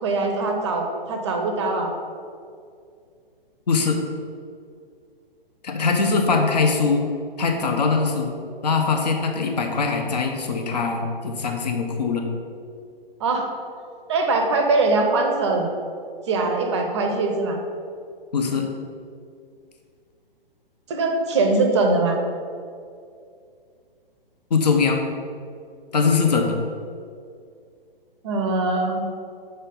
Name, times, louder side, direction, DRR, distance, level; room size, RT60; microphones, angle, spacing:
voice 1, 0.0-1.9 13.2-13.5 14.1-15.7 16.3-17.6 20.9-22.2 28.2-29.0, right 3 dB, 30° right, 3 dB, 0.7 m, -22 dB
voice 2, 3.7-4.0 5.6-7.1 7.4-8.3 8.6-12.2 18.3-18.7 24.5-25.0 25.9-26.6, left 4 dB, 45° left, 3 dB, 0.9 m, -21 dB
6.7 x 4.5 x 5.4 m, 2.3 s
figure-of-eight pair, 125°, 29 cm